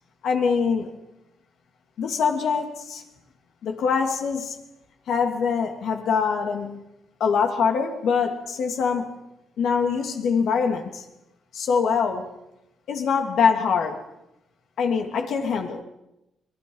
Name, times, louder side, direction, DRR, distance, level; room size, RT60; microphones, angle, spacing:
voice 1, 0.2-0.9 2.0-3.0 3.6-4.6 5.1-6.8 7.2-9.2 9.6-11.0 11.5-12.3 12.9-14.0 14.8-15.8, left 6 dB, 70° left, 4 dB, 2.8 m, -24 dB
25.0 x 20.0 x 5.6 m, 0.89 s
cardioid pair, 90°, 0 cm